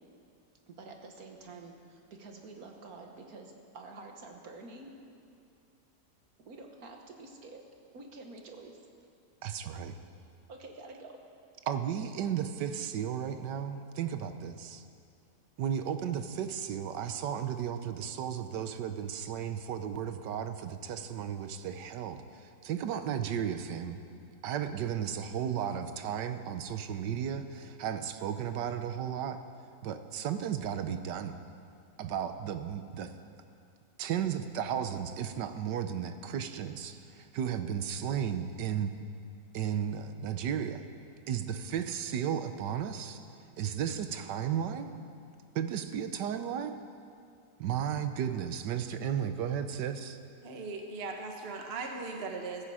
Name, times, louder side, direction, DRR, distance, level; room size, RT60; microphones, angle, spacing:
voice 1, 0.7-4.9 6.4-7.6 7.9-8.8 10.5-11.2, right 3 dB, 55° right, 2 dB, 1.8 m, -48 dB
voice 2, 9.4-9.9 11.7-14.8 15.6-22.2 22.6-24.0 24.4-29.4 29.8-31.3 32.0-33.1 34.0-38.9 39.5-40.8 41.3-43.2 43.6-44.9 45.5-46.8 47.6-50.2, right 8 dB, 75° right, 9 dB, 1.4 m, -34 dB
voice 3, 50.4-52.6, right 3 dB, 40° right, 3 dB, 1.2 m, -38 dB
16.0 x 14.0 x 4.9 m, 2.4 s
omnidirectional pair, 1.9 m